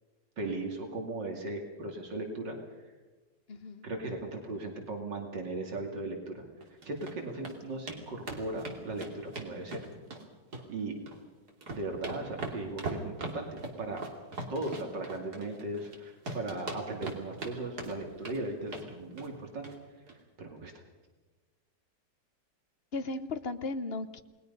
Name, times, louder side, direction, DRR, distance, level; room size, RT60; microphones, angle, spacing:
voice 1, 0.4-2.6 3.8-6.4 6.8-9.8 10.7-10.9 11.7-13.5 13.8-14.0 14.5-19.7 20.4-20.7, right 2 dB, 80° right, 2 dB, 3.2 m, -37 dB
voice 2, 3.5-3.9 22.9-24.2, left 3 dB, 45° left, 10 dB, 1.0 m, -36 dB
sound 1, 6.6-7.1 7.4-7.6 7.9-8.0 8.3-10.2 10.5-11.2 11.5-16.0 16.3-17.5 17.8-18.4 18.7-18.9 19.2-19.4 19.6-19.8 20.1-20.2, right 2 dB, 60° right, 3.3 m, -40 dB
29.0 x 20.0 x 5.5 m, 1.3 s
omnidirectional pair, 1.9 m